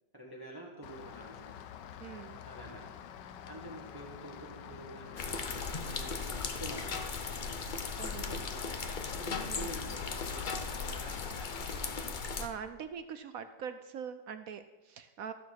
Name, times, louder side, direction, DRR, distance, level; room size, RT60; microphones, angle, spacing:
voice 1, 0.1-1.5 2.4-2.9 3.5-7.3 8.0-12.1, right 1 dB, 15° right, -1 dB, 1.3 m, -48 dB
Rain, 0.8-12.0, left 9 dB, 85° left, 1.4 m, -48 dB
voice 2, 2.0-2.4 8.0-8.5 9.5-10.0 12.4-15.3, right 7 dB, 65° right, 10 dB, 0.9 m, -43 dB
sound 1, 5.2-12.5, left 5 dB, 45° left, 0.6 m, -37 dB
14.5 x 7.1 x 5.9 m, 1.2 s
omnidirectional pair, 1.9 m